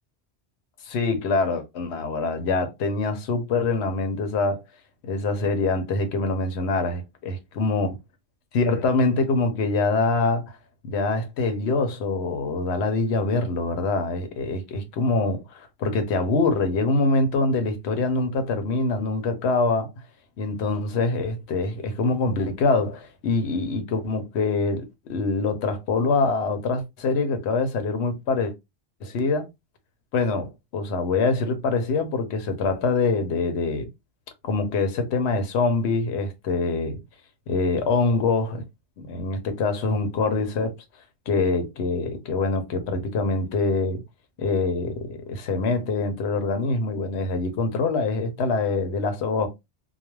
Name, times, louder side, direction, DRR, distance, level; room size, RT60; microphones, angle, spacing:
voice 1, 0.9-4.6 5.0-8.0 8.5-10.5 10.8-19.9 20.4-28.5 29.0-29.5 30.1-33.9 34.4-37.0 37.5-38.6 39.0-40.7 41.3-44.0 44.4-49.5, left 3 dB, 90° left, 0.9 m, -24 dB
2.3 x 2.2 x 3.0 m
omnidirectional pair, 1.1 m